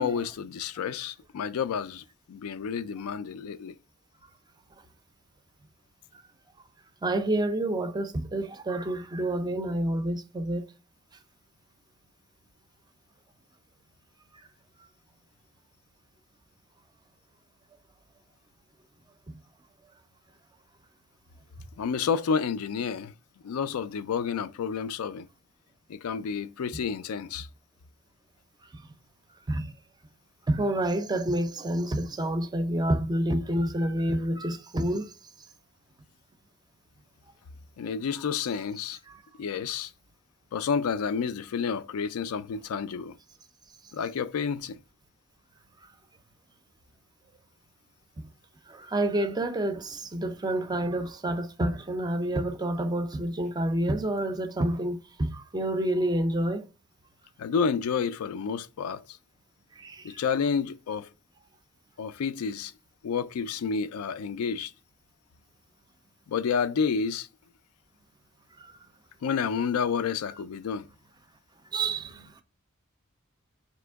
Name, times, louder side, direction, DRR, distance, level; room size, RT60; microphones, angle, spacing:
voice 1, 0.0-3.7 21.8-23.1 23.4-25.3 25.9-27.5 37.8-39.0 39.4-39.9 40.5-43.1 43.9-44.8 57.4-59.0 60.0-61.1 62.0-62.7 63.0-64.7 66.3-67.3 69.2-70.9, left 6 dB, 90° left, 0.4 m, -30 dB
voice 2, 7.0-10.7 28.7-28.8 29.5-29.7 30.5-35.1 39.1-39.2 48.7-56.7 59.8-60.2 68.6-68.7 71.7-72.3, right 1 dB, 20° right, 0.4 m, -28 dB
4.2 x 2.9 x 3.4 m
head